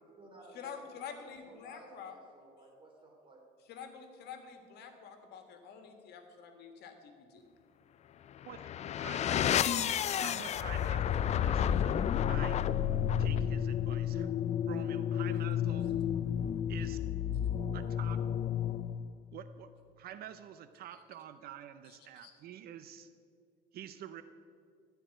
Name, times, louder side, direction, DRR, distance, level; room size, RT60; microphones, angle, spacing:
voice 1, 0.0-3.4, right 2 dB, 30° right, 0 dB, 2.9 m, -56 dB
voice 2, 0.5-2.1 3.7-7.4 9.3-10.2 21.8-22.3, left 7 dB, 75° left, 6 dB, 1.5 m, -48 dB
sound 1, 8.4-19.1, left 9 dB, 40° left, 0.4 m, -31 dB
voice 3, 10.2-12.7 13.2-14.3 14.6-16.0 16.7-17.0 17.7-18.2 19.3-23.1 23.7-24.2, right 10 dB, 65° right, 11 dB, 0.5 m, -48 dB
14.0 x 4.7 x 8.9 m, 2.3 s
cardioid pair, 110°, 17 cm